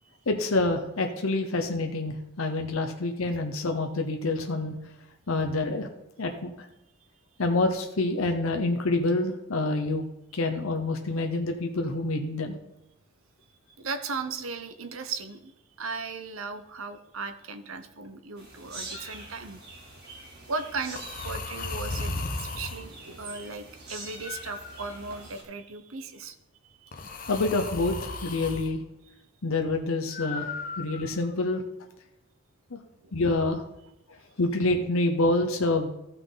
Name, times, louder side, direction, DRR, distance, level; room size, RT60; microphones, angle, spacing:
voice 1, 0.3-4.7 5.3-5.9 6.2-6.5 7.4-10.0 10.3-12.6 27.3-28.0 28.2-28.8 29.4-30.5 30.8-31.6 32.7-32.8 33.1-33.7 34.4-35.9, left 2 dB, 75° left, 4 dB, 0.9 m, -27 dB
voice 2, 13.8-15.5 15.8-19.6 20.5-26.3 26.8-26.9 33.0-33.1, right 4 dB, 70° right, 10 dB, 0.9 m, -37 dB
sound 1, 18.4-25.4, right 2 dB, 55° right, 3.3 m, -45 dB
sound 2, 18.9-19.2 21.0-22.9 24.2-25.4 26.9-28.7 30.1-31.3, left 3 dB, 45° left, 1.0 m, -36 dB
14.5 x 5.8 x 4.0 m, 0.89 s
head